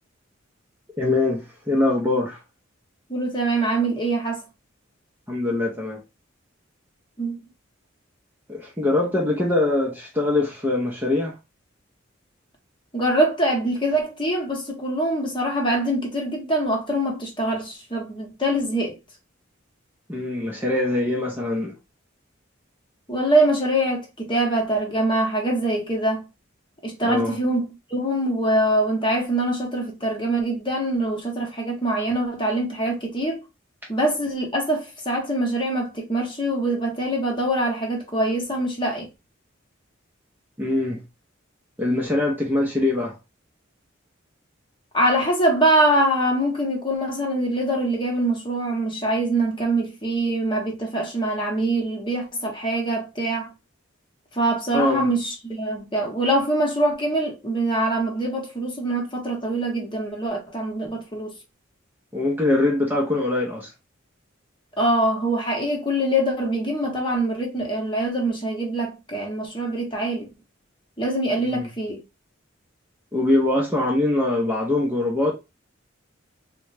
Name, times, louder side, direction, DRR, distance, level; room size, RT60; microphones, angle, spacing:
voice 1, 1.0-2.4 5.3-6.0 8.5-11.3 20.1-21.7 27.0-27.4 40.6-41.0 41.8-43.2 54.7-55.1 62.1-63.7 71.5-71.7 73.1-75.3, left 2 dB, 10° right, 0.6 m, -23 dB
voice 2, 3.1-4.4 7.2-7.4 12.9-19.0 23.1-26.2 26.8-33.4 33.9-39.1 44.9-53.5 54.3-61.3 64.8-70.3 71.0-72.0, right 1 dB, 25° left, 1.0 m, -24 dB
3.7 x 2.2 x 3.2 m
head